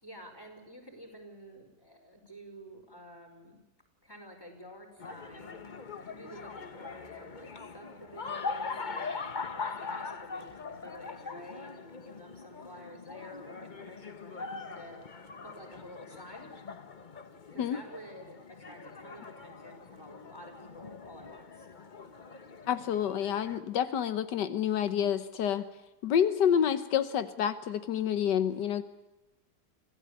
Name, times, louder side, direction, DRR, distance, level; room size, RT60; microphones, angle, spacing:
voice 1, 0.0-3.6 4.0-16.5 17.5-21.7, equal, 15° left, 2 dB, 5.6 m, -50 dB
sound 1, 5.0-23.6, left 4 dB, 35° left, 1.0 m, -42 dB
voice 2, 22.7-25.7 26.0-28.8, left 9 dB, 90° left, 12 dB, 1.6 m, -28 dB
25.5 x 16.5 x 8.4 m, 1.0 s
omnidirectional pair, 1.8 m